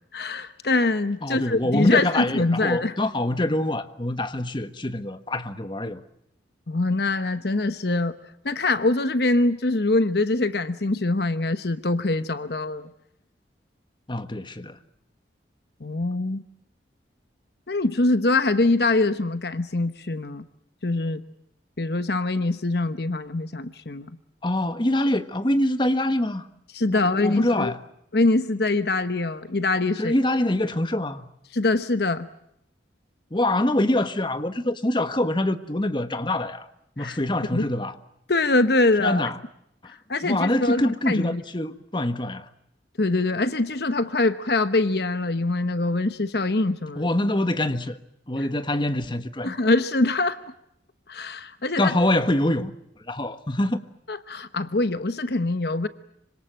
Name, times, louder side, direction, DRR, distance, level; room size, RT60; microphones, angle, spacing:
voice 1, 0.1-2.9 6.7-8.1 8.4-12.9 15.8-16.4 17.7-20.4 20.8-21.2 21.8-24.1 26.7-27.7 28.1-30.1 31.5-32.3 37.0-37.2 37.5-37.7 38.3-39.3 40.1-41.4 43.0-47.1 48.4-48.5 49.4-50.4 51.1-51.9 54.1-55.9, left 2 dB, 60° left, 1.0 m, -24 dB
voice 2, 1.2-6.0 14.1-14.8 24.4-26.5 26.9-27.8 30.0-31.3 33.3-36.7 37.0-37.9 39.0-39.4 39.8-39.9 40.2-42.5 46.9-48.0 48.3-49.6 51.8-52.7 53.1-53.8, left 1 dB, 25° left, 1.4 m, -25 dB
26.5 x 25.5 x 7.6 m
head